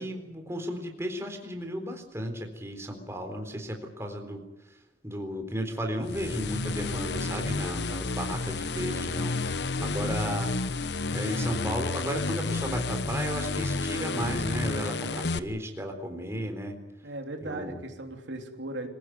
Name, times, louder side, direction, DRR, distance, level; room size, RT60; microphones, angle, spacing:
voice 1, 0.0-4.4 5.0-10.5 11.1-16.8 17.4-17.8, equal, 15° right, 4 dB, 3.8 m, -34 dB
sound 1, 6.0-15.4, left 3 dB, 65° left, 1.0 m, -31 dB
voice 2, 17.0-18.9, right 2 dB, 80° right, 3 dB, 3.3 m, -37 dB
26.0 x 17.0 x 9.5 m, 0.87 s
head